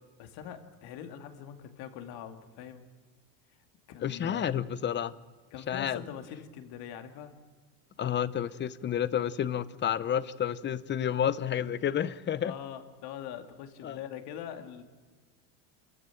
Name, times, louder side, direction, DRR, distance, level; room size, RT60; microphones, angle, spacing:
voice 1, 0.2-2.8 3.9-4.5 5.5-7.3 12.4-14.8, left 9 dB, 60° left, 2.6 m, -43 dB
voice 2, 4.0-5.1 5.7-6.0 8.0-12.5 13.8-14.0, left 9 dB, 25° left, 0.8 m, -30 dB
28.5 x 15.0 x 9.1 m
supercardioid pair, 130°, 44 cm